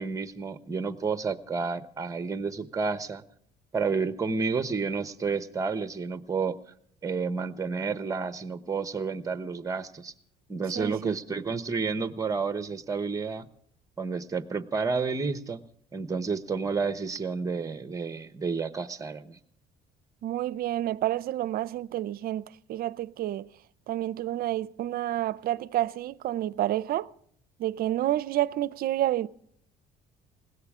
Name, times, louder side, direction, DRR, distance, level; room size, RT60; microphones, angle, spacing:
voice 1, 0.0-3.2 3.7-6.6 7.0-10.1 10.5-13.5 14.0-15.6 15.9-19.4, right 4 dB, 20° right, 1.0 m, -30 dB
voice 2, 10.7-11.2 20.2-23.5 23.9-27.1 27.6-29.3, right 13 dB, 60° right, 0.5 m, -29 dB
20.0 x 17.0 x 3.7 m
cardioid pair, 110°, 17 cm